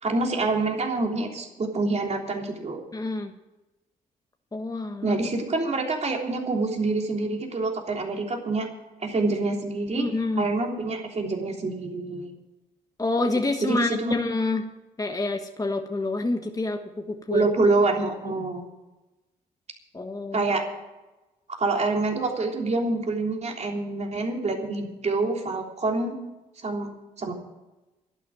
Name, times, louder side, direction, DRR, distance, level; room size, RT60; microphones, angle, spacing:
voice 1, 0.0-2.8 5.0-8.7 9.0-10.1 10.4-12.3 13.6-14.1 17.3-18.6 20.3-20.6 21.6-26.1 26.6-26.9 27.2-27.3, right 3 dB, 45° right, 1 dB, 3.4 m, -26 dB
voice 2, 2.9-3.3 4.5-5.2 10.0-10.5 13.0-14.7 15.0-17.5 18.2-18.3 19.9-20.5, left 2 dB, 20° left, 4 dB, 1.5 m, -28 dB
11.5 x 9.4 x 9.2 m, 1.0 s
supercardioid pair, 60°, 16 cm